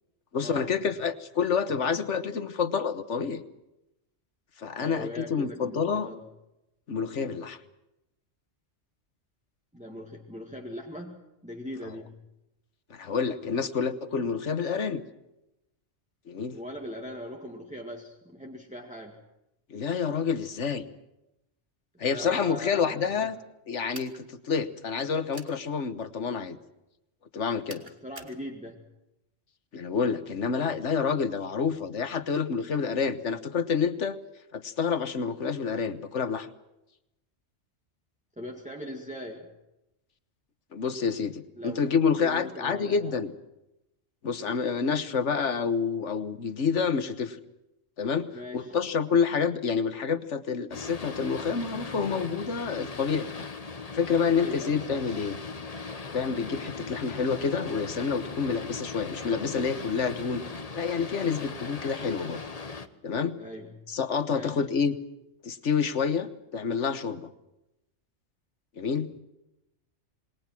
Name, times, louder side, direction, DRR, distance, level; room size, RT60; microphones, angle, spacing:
voice 1, 0.3-3.4 4.6-6.1 6.9-7.6 12.9-15.0 16.3-16.6 19.7-20.8 22.0-23.3 23.7-26.6 27.3-27.8 29.7-34.2 34.5-36.5 40.7-43.3 44.2-47.4 48.0-48.3 48.5-53.5 53.9-55.4 56.1-60.4 60.7-62.4 63.0-63.4 63.9-64.9 65.4-67.3 68.8-69.2, left 6 dB, 80° left, 12 dB, 1.6 m, -28 dB
voice 2, 4.8-6.3 9.7-11.2 11.4-12.2 16.5-19.2 22.1-23.3 27.8-28.8 38.4-39.6 41.6-41.9 42.2-43.2 48.3-48.8 54.3-55.0 63.4-63.8 64.3-64.7, equal, 5° right, 0 dB, 2.2 m, -40 dB
sound 1, 23.9-24.2 25.3-25.6 27.7-28.4, right 3 dB, 55° right, 2.2 m, -45 dB
Boat Water vehicle, 50.7-62.9, left 4 dB, 35° left, 1.2 m, -39 dB
27.5 x 21.0 x 6.1 m, 0.91 s
omnidirectional pair, 1.2 m